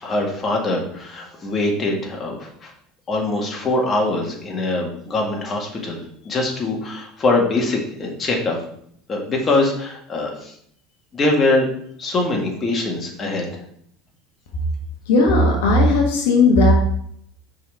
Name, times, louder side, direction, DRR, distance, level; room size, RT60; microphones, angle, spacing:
voice 1, 0.0-2.7 3.1-8.6 9.1-10.5 11.1-11.7 12.0-13.6, left 2 dB, 35° left, 0 dB, 1.8 m, -23 dB
voice 2, 15.1-16.7, left 2 dB, 75° left, 0 dB, 1.1 m, -15 dB
5.6 x 4.0 x 4.6 m, 0.67 s
hypercardioid pair, 85°, 0 cm